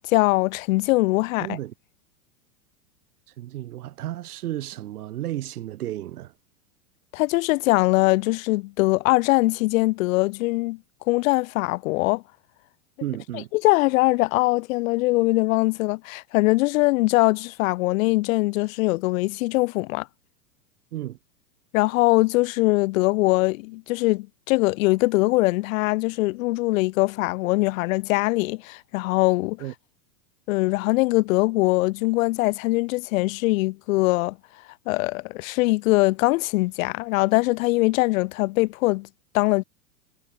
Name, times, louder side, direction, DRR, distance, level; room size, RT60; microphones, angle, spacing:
voice 1, 0.0-1.6 7.1-10.8 11.1-12.2 13.5-20.1 21.7-29.6 30.5-34.4 34.9-39.1 39.3-39.6, left 21 dB, 60° left, 2.9 m, -22 dB
voice 2, 1.4-1.7 3.4-6.3 13.0-13.5 20.9-21.2 29.6-29.7, right 14 dB, 70° right, 6.7 m, -33 dB
hypercardioid pair, 120°, 46 cm